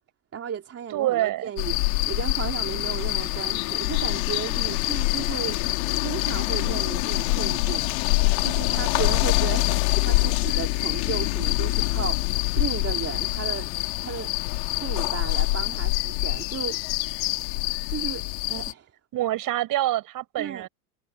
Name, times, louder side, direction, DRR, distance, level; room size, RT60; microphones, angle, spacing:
voice 1, 0.3-5.6 6.0-7.9 8.4-13.7 14.0-14.3 14.8-16.8 17.9-18.9 20.4-20.7, right 8 dB, 35° right, 3.5 m, -34 dB
voice 2, 0.9-1.5 19.1-20.7, right 14 dB, 50° right, 7.1 m, -26 dB
sound 1, 1.6-18.7, left 26 dB, 70° left, 3.1 m, -25 dB
hypercardioid pair, 90°, 43 cm